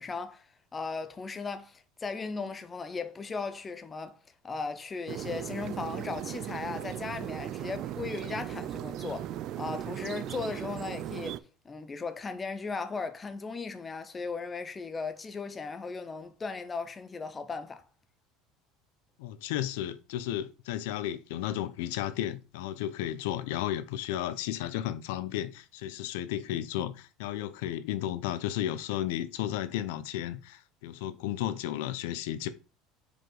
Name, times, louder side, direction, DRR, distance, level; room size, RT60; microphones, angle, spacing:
voice 1, 0.0-4.2 4.4-11.4 11.6-17.9, left 4 dB, 15° left, 0.5 m, -37 dB
sound 1, 5.1-11.4, right 12 dB, 45° right, 0.3 m, -37 dB
voice 2, 19.2-32.5, left 12 dB, 80° left, 0.6 m, -33 dB
5.0 x 4.9 x 3.9 m
cardioid pair, 160°, 0 cm